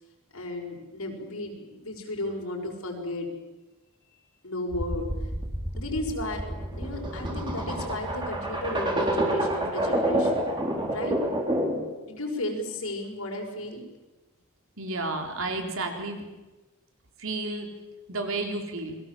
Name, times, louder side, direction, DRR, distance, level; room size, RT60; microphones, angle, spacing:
voice 1, 0.3-3.3 4.4-5.1 5.8-10.5 10.9-11.2 12.1-13.8, left 1 dB, 80° left, 2 dB, 6.1 m, -34 dB
sound 1, 4.7-11.9, right 1 dB, 20° right, 4.2 m, -28 dB
voice 2, 14.8-16.2 17.2-17.7 18.1-19.0, right 2 dB, 65° right, 4 dB, 3.9 m, -31 dB
29.0 x 22.0 x 7.6 m, 1.1 s
head